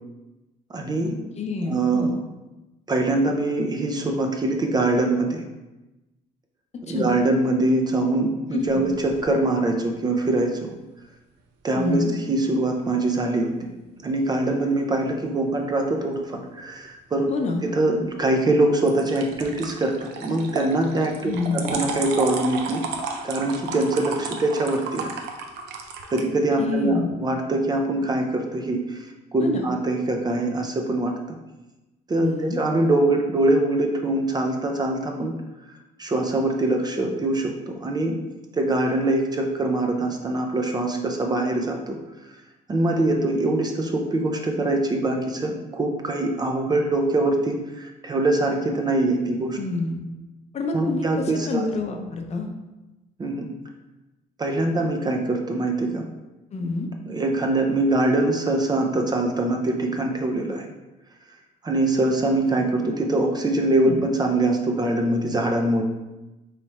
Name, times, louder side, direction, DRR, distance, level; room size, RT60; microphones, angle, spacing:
voice 1, 0.7-1.2 1.7-2.2 2.9-5.4 6.8-10.7 11.6-13.7 14.0-17.3 17.6-22.8 23.2-25.1 26.1-31.4 32.1-35.3 36.0-38.2 38.5-42.0 42.7-49.6 50.7-51.7 53.2-53.5 54.4-56.1 57.0-60.7 61.6-65.8, right 2 dB, 25° right, 2 dB, 0.5 m, -23 dB
voice 2, 1.4-2.1 6.9-7.1 8.5-8.9 11.7-12.1 17.3-17.6 21.2-21.8 26.6-27.1 29.4-29.7 32.2-32.6 43.0-43.1 49.5-50.0 50.5-52.5 56.5-56.9 63.8-64.0, left 3 dB, 40° left, 3 dB, 0.6 m, -28 dB
sound 1, 8.6-9.3 18.9-26.2, right 5 dB, 80° right, 0.6 m, -33 dB
3.4 x 3.1 x 4.1 m, 1.0 s
cardioid pair, 110°, 17 cm